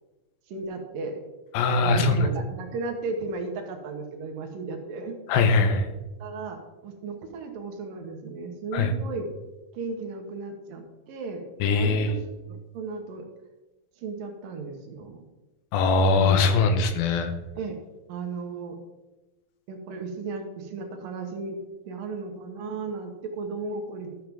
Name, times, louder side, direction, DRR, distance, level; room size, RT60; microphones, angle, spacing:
voice 1, 0.5-1.2 1.8-5.2 5.9-9.3 9.7-12.2 12.5-13.3 14.0-15.2 16.1-16.5 17.6-17.8 18.1-18.8 19.7-21.6 21.8-24.2, right 4 dB, 70° right, 4 dB, 2.7 m, -35 dB
voice 2, 1.5-2.3 5.3-5.9 8.7-8.9 11.6-12.1 15.7-17.3, left 4 dB, 80° left, 8 dB, 2.7 m, -21 dB
13.0 x 7.7 x 3.5 m, 1.1 s
omnidirectional pair, 4.3 m